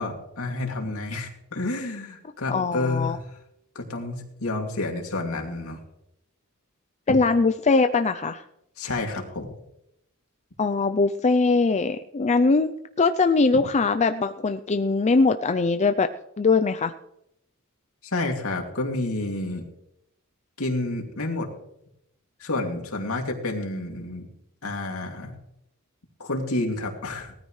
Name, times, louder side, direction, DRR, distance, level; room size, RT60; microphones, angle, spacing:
voice 1, 0.0-3.2 3.7-5.8 7.1-7.2 8.8-9.5 13.5-13.6 18.0-19.6 20.6-21.5 22.4-24.3 24.6-25.4 26.2-27.3, left 2 dB, 70° left, 2 dB, 2.6 m, -29 dB
voice 2, 2.5-3.2 7.1-8.4 10.6-12.7 13.0-16.1 16.4-16.9, left 4 dB, 30° left, 9 dB, 0.5 m, -21 dB
19.0 x 13.5 x 3.2 m, 0.81 s
head